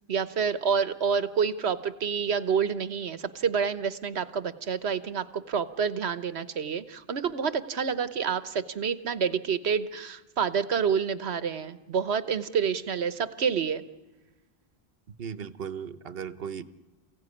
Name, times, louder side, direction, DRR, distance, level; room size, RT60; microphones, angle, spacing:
voice 1, 0.1-13.8, right 6 dB, 90° right, 13 dB, 1.3 m, -28 dB
voice 2, 15.2-16.6, right 7 dB, 65° right, 14 dB, 1.2 m, -36 dB
29.0 x 16.5 x 9.8 m, 1.2 s
omnidirectional pair, 1.1 m